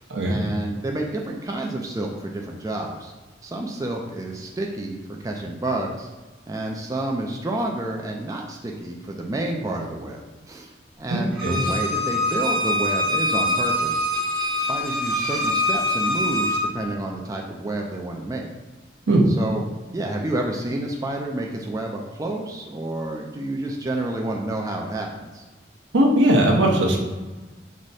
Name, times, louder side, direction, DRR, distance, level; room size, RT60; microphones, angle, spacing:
voice 1, 0.2-3.1 3.4-6.1 6.5-10.7 11.0-14.1 14.7-18.5 19.4-19.6 19.9-25.4, right 1 dB, 20° right, 0 dB, 0.3 m, -29 dB
voice 2, 11.1-11.6 19.1-19.3 25.9-27.0, right 1 dB, 80° right, -1 dB, 0.8 m, -19 dB
Bowed string instrument, 11.4-16.6, left 1 dB, ahead, 0.8 m, -24 dB
4.7 x 2.1 x 4.0 m, 1.3 s
head